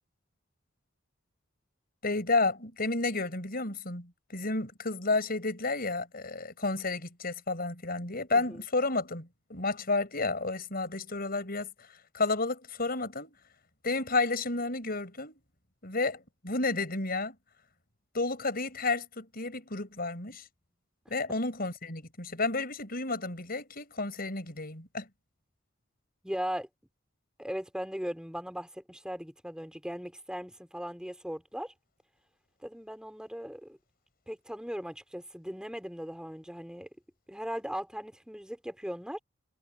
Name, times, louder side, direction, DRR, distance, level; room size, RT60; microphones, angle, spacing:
voice 1, 2.0-13.4 13.8-15.4 15.8-17.3 18.1-20.5 21.1-25.1, left 3 dB, 50° left, 6.4 m, -31 dB
voice 2, 8.3-8.6 26.2-26.7 27.4-31.7 32.6-33.8 34.3-36.9 37.3-39.2, equal, 5° right, 4.8 m, -38 dB
head